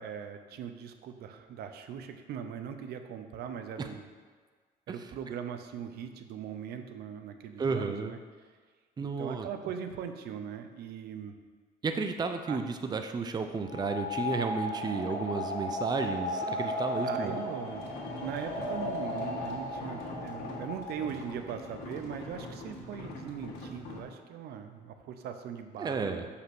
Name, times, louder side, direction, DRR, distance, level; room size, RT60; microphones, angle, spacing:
voice 1, 0.0-4.1 4.9-8.2 9.0-11.4 12.5-12.6 17.0-26.3, right 8 dB, 70° right, 8 dB, 0.7 m, -40 dB
voice 2, 7.6-8.1 9.0-9.5 11.8-17.4 25.8-26.3, right 4 dB, 25° right, 7 dB, 0.6 m, -32 dB
sound 1, 13.6-21.3, left 1 dB, 40° left, 2.6 m, -35 dB
sound 2, 17.7-24.0, left 2 dB, 75° left, 1.7 m, -43 dB
6.5 x 5.8 x 6.1 m, 1.5 s
cardioid pair, 110°, 17 cm